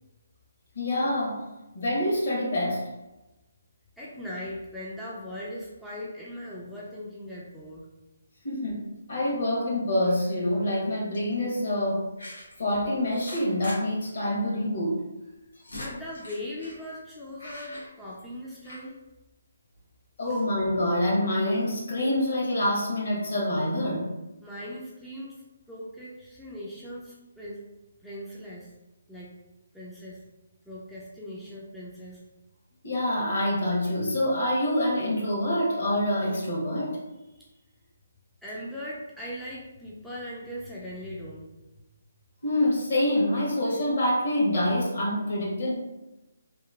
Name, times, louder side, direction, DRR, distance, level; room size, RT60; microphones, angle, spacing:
voice 1, 0.7-1.5 1.7-2.9 8.4-12.1 12.6-15.0 20.2-24.2 32.8-37.0 42.4-45.7, left 1 dB, 60° left, -4 dB, 1.1 m, -26 dB
voice 2, 4.0-7.9 15.7-19.0 20.3-20.4 24.4-27.7 28.0-28.7 29.1-29.4 29.7-30.2 30.7-32.2 37.3-37.5 38.4-41.5, left 1 dB, ahead, -8 dB, 0.3 m, -39 dB
sound 1, 10.0-10.4 11.1-11.3 12.2-12.6 13.1-13.8 14.0-14.1 14.4-14.5 15.2-16.8 17.4-18.4 18.6-18.8, left 1 dB, 85° left, 1.3 m, -43 dB
2.9 x 2.4 x 2.4 m, 1.0 s
hypercardioid pair, 160°, 0 cm